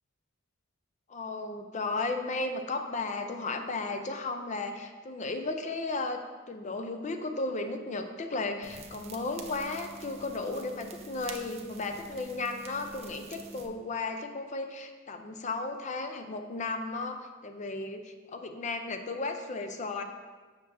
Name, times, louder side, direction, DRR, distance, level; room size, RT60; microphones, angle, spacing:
voice 1, 1.1-20.0, left 3 dB, 35° left, 6 dB, 0.5 m, -35 dB
sound 1, 8.6-13.7, right 4 dB, 35° right, 0.5 m, -46 dB
6.4 x 6.2 x 3.3 m, 1.4 s
head